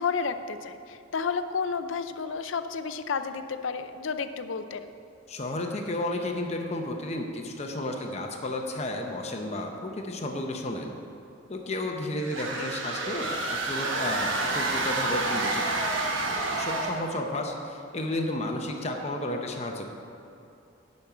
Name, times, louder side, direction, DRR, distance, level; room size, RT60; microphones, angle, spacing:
voice 1, 0.0-4.9 12.5-12.7, left 5 dB, 80° left, 10 dB, 0.5 m, -31 dB
voice 2, 5.3-10.9 11.5-15.9 16.3-19.9, left 1 dB, 35° left, 3 dB, 0.8 m, -32 dB
sound 1, 12.2-17.1, right 2 dB, 90° right, 1.2 m, -29 dB
10.5 x 5.3 x 7.1 m, 2.8 s
head